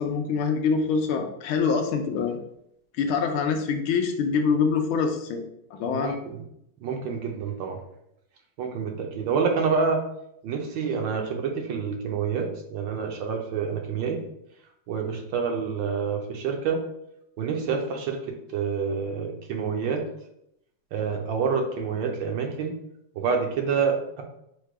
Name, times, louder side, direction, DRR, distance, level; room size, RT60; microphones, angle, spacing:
voice 1, 0.0-2.4 3.0-5.4 5.7-6.1, left 5 dB, 85° left, 5 dB, 1.4 m, -25 dB
voice 2, 5.9-6.4 6.8-7.8 8.6-10.0 10.4-14.2 14.9-16.8 17.4-18.2 18.5-20.0 20.9-22.7 23.2-24.2, right 5 dB, 70° right, 2 dB, 1.2 m, -27 dB
4.7 x 2.2 x 4.6 m, 0.76 s
omnidirectional pair, 2.3 m